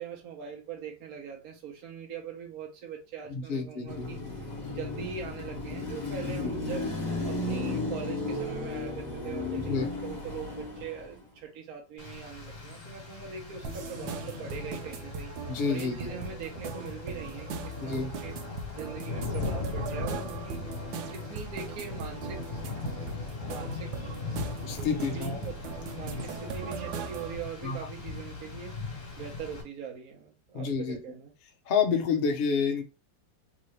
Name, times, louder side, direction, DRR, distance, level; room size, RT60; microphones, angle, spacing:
voice 1, 0.0-4.2 4.7-6.9 7.2-15.3 15.6-18.3 18.8-20.6 21.1-24.4 25.1-28.8 29.2-31.3, right 6 dB, 55° right, 1.2 m, -42 dB
voice 2, 3.3-4.1 4.7-4.8 6.2-6.5 9.7-9.9 15.5-16.1 17.8-18.1 24.6-25.4 27.6-27.8 30.5-31.0 31.7-32.8, left 5 dB, 65° left, 0.5 m, -29 dB
Car passing by / Traffic noise roadway noise / Engine, 3.9-11.2, left 2 dB, 25° left, 1.0 m, -34 dB
Rain, 12.0-29.6, left 4 dB, 45° left, 1.6 m, -39 dB
sound 1, 13.6-27.4, right 5 dB, 80° right, 1.3 m, -40 dB
3.6 x 2.7 x 3.2 m
omnidirectional pair, 2.1 m